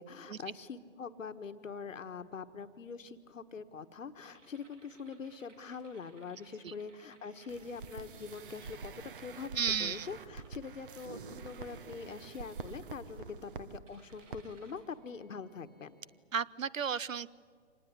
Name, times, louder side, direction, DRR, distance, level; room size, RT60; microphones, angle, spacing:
voice 1, 0.0-8.9 9.2-16.0, left 5 dB, 80° left, 10 dB, 1.5 m, -44 dB
sound 1, 4.2-8.8 9.3-9.7 10.3-11.0 11.5-11.9 12.6-13.3 13.9-16.2, right 3 dB, 70° right, 4.2 m, -65 dB
sound 2, 7.5-13.8 14.1-14.4 14.7-14.8, right 5 dB, 40° right, 1.3 m, -47 dB
voice 2, 9.6-10.1 16.3-17.3, right 7 dB, 90° right, 20 dB, 0.9 m, -33 dB
26.5 x 19.5 x 9.6 m, 2.1 s
hypercardioid pair, 150°, 38 cm